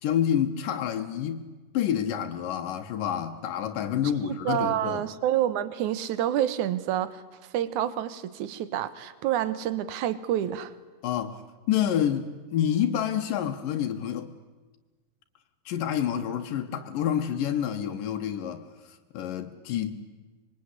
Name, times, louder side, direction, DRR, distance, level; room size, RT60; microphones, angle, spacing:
voice 1, 0.0-1.5 1.7-5.1 11.0-11.4 11.7-14.3 15.7-20.0, left 9 dB, 90° left, 2.9 m, -28 dB
voice 2, 4.2-7.2 7.5-10.7, right 11 dB, 70° right, 2.5 m, -28 dB
25.0 x 22.5 x 9.8 m
omnidirectional pair, 3.8 m